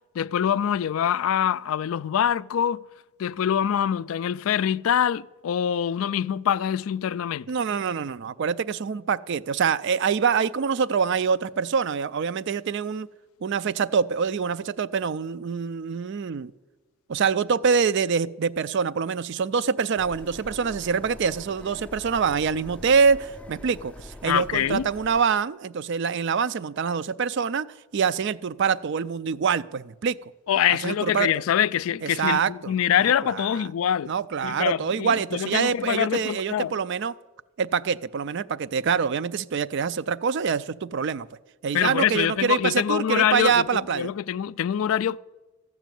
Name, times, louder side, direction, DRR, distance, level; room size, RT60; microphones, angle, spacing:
voice 1, 0.2-2.8 3.2-7.5 24.2-24.9 30.5-34.1 34.4-36.7 41.7-45.2, left 9 dB, 75° left, 0.3 m, -24 dB
voice 2, 7.5-13.1 13.4-16.5 17.1-27.7 27.9-30.3 30.7-31.3 32.0-32.7 33.0-33.6 34.1-37.1 37.6-41.3 41.6-44.1, right 6 dB, 55° right, 0.4 m, -25 dB
sound 1, 20.0-25.2, left 1 dB, 5° left, 0.4 m, -44 dB
14.5 x 6.1 x 9.1 m
head